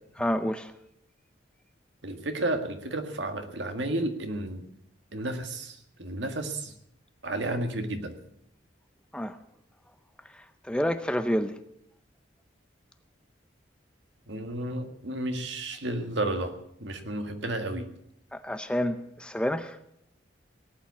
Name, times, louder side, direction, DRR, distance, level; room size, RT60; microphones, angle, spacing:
voice 1, 0.2-0.7 9.1-9.4 10.3-11.5 18.3-19.8, equal, 5° left, 0.6 m, -29 dB
voice 2, 2.0-4.6 5.1-6.7 7.2-8.2 14.3-16.5 16.8-17.9, right 1 dB, 75° right, 1.9 m, -32 dB
19.0 x 9.2 x 8.3 m
head